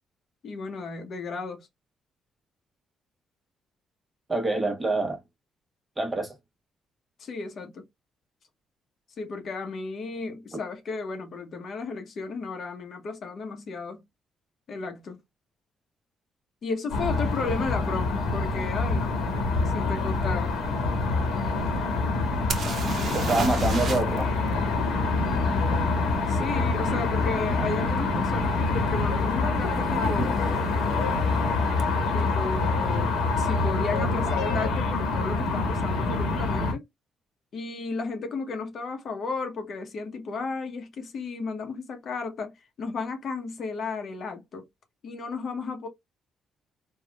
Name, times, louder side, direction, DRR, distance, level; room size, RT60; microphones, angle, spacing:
voice 1, 0.4-1.7 7.2-7.8 9.2-14.0 14.7-15.2 16.6-19.2 19.6-20.5 26.3-30.5 32.1-36.8 37.5-44.6 45.0-45.9, left 4 dB, 55° left, 0.8 m, -34 dB
voice 2, 4.3-5.2 6.0-6.3 23.1-24.3, right 2 dB, 20° right, 1.0 m, -26 dB
City Noise from Lake at kingston, 16.9-36.7, left 3 dB, 85° left, 1.2 m, -26 dB
sound 1, 22.5-24.2 24.5-24.6 28.0-28.1 28.7-28.9 29.2-29.8 31.8-31.9 32.2-32.3, right 5 dB, 55° right, 0.6 m, -33 dB
3.4 x 2.3 x 2.3 m
cardioid pair, 90°, 0 cm